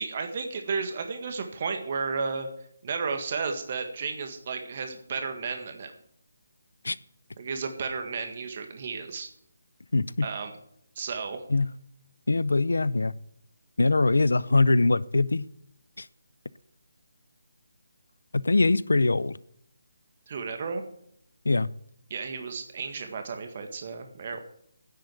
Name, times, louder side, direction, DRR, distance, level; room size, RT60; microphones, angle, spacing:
voice 1, 0.0-2.5 2.8-5.9 7.4-9.3 10.2-10.5 11.0-11.4 20.3-20.8 22.1-24.4, right 5 dB, 45° right, 1.7 m, -33 dB
voice 2, 9.9-10.3 11.5-11.7 12.3-13.1 13.8-15.4 16.0-16.1 18.3-19.4 21.5-21.7, left 3 dB, 80° left, 0.6 m, -22 dB
10.5 x 7.8 x 9.1 m
figure-of-eight pair, 155°, 0 cm